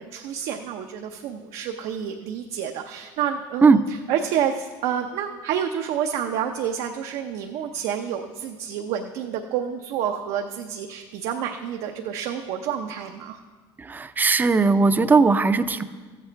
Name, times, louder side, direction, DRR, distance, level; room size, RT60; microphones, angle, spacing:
voice 1, 0.0-3.8 4.1-13.4, right 8 dB, 75° right, 4 dB, 0.7 m, -29 dB
voice 2, 13.8-15.8, right 4 dB, 15° right, 11 dB, 0.5 m, -18 dB
14.0 x 8.1 x 4.5 m, 1.4 s
cardioid pair, 115°, 11 cm